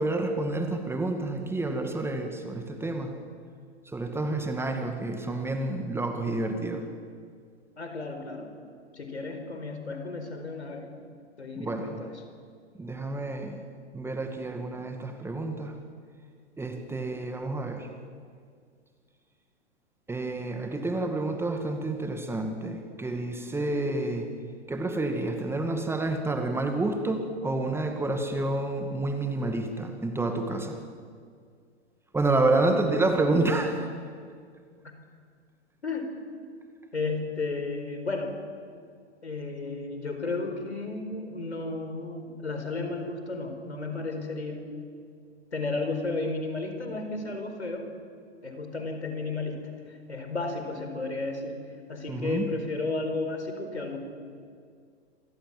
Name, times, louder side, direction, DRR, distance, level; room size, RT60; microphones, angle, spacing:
voice 1, 0.0-3.1 3.9-6.8 11.6-12.0 12.8-13.6 13.9-15.8 16.6-17.9 20.1-24.3 24.7-30.8 32.1-33.9 52.1-52.5, right 2 dB, 5° right, 5 dB, 2.0 m, -29 dB
voice 2, 7.8-8.5 8.9-10.9 11.4-12.1 32.7-32.8 35.8-36.1 36.9-38.3 39.2-44.7 45.5-47.9 48.4-49.6 49.9-51.6 51.9-54.0, left 3 dB, 75° left, 5 dB, 4.8 m, -33 dB
28.0 x 24.0 x 7.6 m, 2.1 s
figure-of-eight pair, 105°, 34 cm